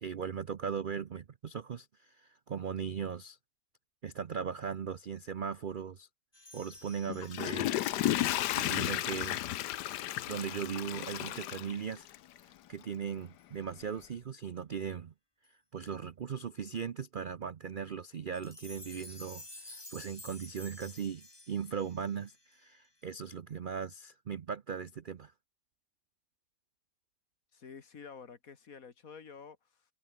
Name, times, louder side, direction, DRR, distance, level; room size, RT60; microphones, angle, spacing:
voice 1, 0.0-3.4 4.0-6.1 6.5-7.8 8.5-9.4 10.3-12.1 12.7-15.1 15.7-25.3, right 7 dB, 65° right, 0.5 m, -38 dB
sound 1, 6.3-10.8 11.1-11.3 11.9-12.1 13.4-13.5 14.0-14.1 15.4-15.5 18.3-23.1, left 1 dB, 15° left, 2.3 m, -53 dB
Water / Toilet flush, 7.1-12.4 12.8-12.9, left 13 dB, 85° left, 1.3 m, -33 dB
voice 2, 27.5-29.8, left 6 dB, 55° left, 2.1 m, -50 dB
omnidirectional pair, 1.8 m